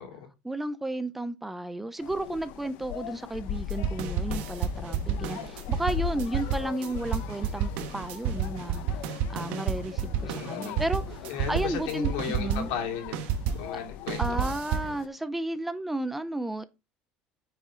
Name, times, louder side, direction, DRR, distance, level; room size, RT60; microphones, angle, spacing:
voice 1, 0.4-8.8 9.1-12.7 13.7-13.8 14.2-16.6, right 2 dB, 5° right, 0.4 m, -33 dB
sound 1, 2.0-15.1, left 11 dB, 60° left, 0.6 m, -40 dB
sound 2, 3.5-13.7 14.1-14.9, right 7 dB, 65° right, 1.2 m, -31 dB
voice 2, 10.2-10.8 11.3-13.2 13.5-14.4, left 8 dB, 80° left, 2.7 m, -35 dB
9.2 x 5.6 x 3.7 m
cardioid pair, 175°, 3 cm